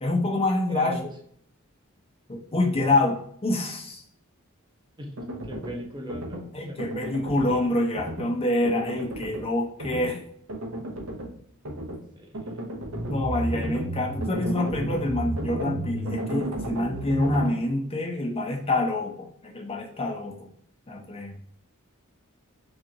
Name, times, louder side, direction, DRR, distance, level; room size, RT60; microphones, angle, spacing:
voice 1, 0.0-1.0 2.3-4.0 6.5-10.2 13.1-20.5 20.9-21.3, left 2 dB, 25° left, 1 dB, 0.6 m, -26 dB
voice 2, 0.7-1.0 5.0-5.1 5.4-6.8 12.1-12.6, equal, 20° right, 0 dB, 0.7 m, -39 dB
sound 1, 5.2-5.8 6.1-6.4 6.8-7.6 7.9-8.3 8.6-9.4 9.8-10.1 10.5-11.3 11.6-12.0 12.3-17.5, right 1 dB, 70° right, 0.9 m, -32 dB
5.1 x 2.5 x 2.8 m, 0.65 s
head